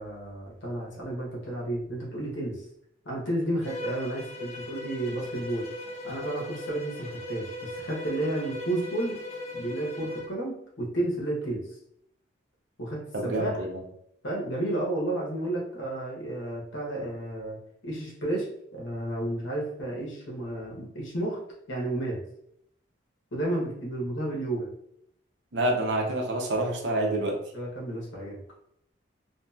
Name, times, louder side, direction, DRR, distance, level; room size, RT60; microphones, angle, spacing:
voice 1, 0.0-2.7 3.0-5.7 6.0-9.2 9.5-11.6 12.8-13.6 14.2-17.6 17.8-18.5 18.7-21.4 21.7-22.2 23.3-24.7 27.5-28.4, right 1 dB, 75° left, -2 dB, 1.0 m, -32 dB
Bowed string instrument, 3.6-10.4, left 1 dB, 35° left, 0.5 m, -38 dB
voice 2, 13.1-13.7 25.5-27.4, right 1 dB, 60° right, 1 dB, 0.6 m, -27 dB
2.8 x 2.5 x 2.3 m, 0.73 s
head